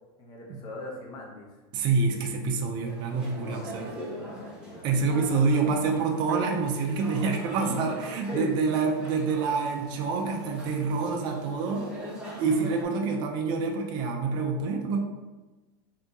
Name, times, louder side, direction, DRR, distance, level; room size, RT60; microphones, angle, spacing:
voice 1, 0.2-1.5 3.3-3.8 4.1-5.3 8.3-8.5, left 3 dB, 35° left, -1 dB, 0.8 m, -41 dB
voice 2, 1.7-3.9 4.8-11.9 12.4-15.0, right 4 dB, 35° right, 2 dB, 0.4 m, -27 dB
sound 1, 2.8-12.8, right 1 dB, 5° right, 0.8 m, -42 dB
2.7 x 2.7 x 3.5 m, 1.2 s
supercardioid pair, 150°, 13 cm